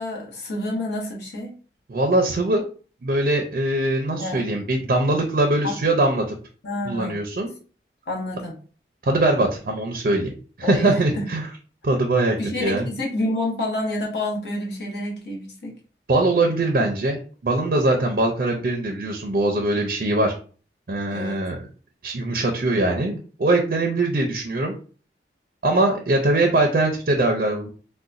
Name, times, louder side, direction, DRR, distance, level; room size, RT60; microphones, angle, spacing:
voice 1, 0.0-1.5 4.2-4.5 5.6-5.8 6.6-7.2 8.1-8.6 10.6-11.3 12.4-15.7 21.1-21.4, left 1 dB, 70° left, -2 dB, 1.0 m, -28 dB
voice 2, 1.9-2.6 3.0-6.4 6.8-7.5 9.1-10.3 10.6-11.5 11.8-12.9 16.1-20.3 20.9-21.6 22.0-24.7 25.6-27.7, right 2 dB, 50° right, 2 dB, 0.4 m, -22 dB
3.9 x 2.1 x 2.4 m, 0.40 s
head